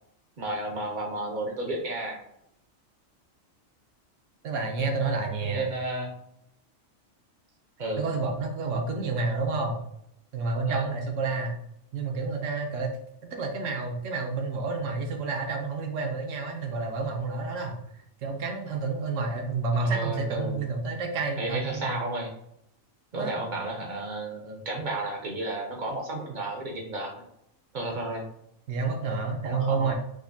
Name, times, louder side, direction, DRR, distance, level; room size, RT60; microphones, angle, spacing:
voice 1, 0.4-2.2 4.8-4.9 5.4-6.1 7.8-8.0 10.7-10.8 19.8-20.6 21.4-22.3 23.1-27.2 27.7-28.3 29.4-29.9, right 2 dB, 50° right, 0 dB, 0.6 m, -32 dB
voice 2, 4.4-5.7 8.0-9.8 10.3-11.6 11.9-13.0 13.3-17.8 18.2-22.0 23.2-23.3 28.7-29.9, right 4 dB, 75° right, 2 dB, 0.9 m, -29 dB
5.0 x 2.1 x 2.6 m, 0.77 s
omnidirectional pair, 1.4 m